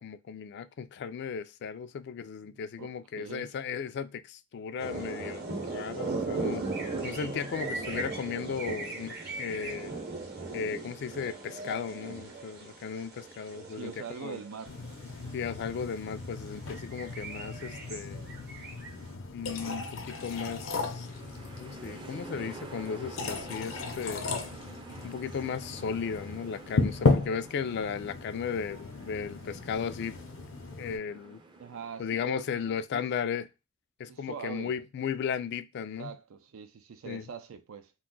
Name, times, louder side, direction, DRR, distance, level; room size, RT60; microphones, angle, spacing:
voice 1, 0.0-6.6 7.0-9.9 10.5-13.9 14.2-14.4 15.3-18.3 19.3-21.1 21.6-24.4 25.0-30.2 30.8-31.4 32.0-33.5 34.0-36.1 37.1-37.3, left 6 dB, 55° left, 0.3 m, -35 dB
voice 2, 3.2-3.5 13.7-14.7 31.6-33.0 34.1-34.8 36.0-37.9, right 6 dB, 85° right, 0.4 m, -43 dB
sound 1, 4.8-15.2 15.7-15.9 16.3-18.9, right 3 dB, 55° right, 0.8 m, -38 dB
sound 2, 14.7-31.0, left 3 dB, 80° left, 0.7 m, -35 dB
sound 3, 20.0-32.1, right 2 dB, 25° right, 0.4 m, -49 dB
2.5 x 2.3 x 3.7 m
head